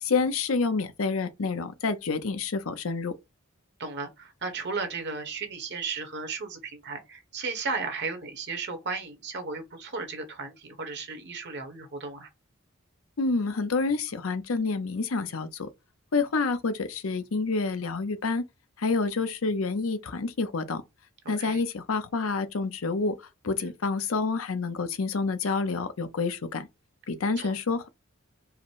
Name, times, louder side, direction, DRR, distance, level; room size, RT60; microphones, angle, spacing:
voice 1, 0.0-3.1 13.2-15.7 16.1-18.4 18.8-20.8 21.3-23.2 23.4-26.7 27.1-27.9, left 4 dB, 80° left, 0.7 m, -28 dB
voice 2, 3.8-12.3 21.4-21.6 23.6-23.7 27.4-27.5, right 4 dB, 55° right, 1.2 m, -35 dB
4.8 x 2.1 x 4.5 m
head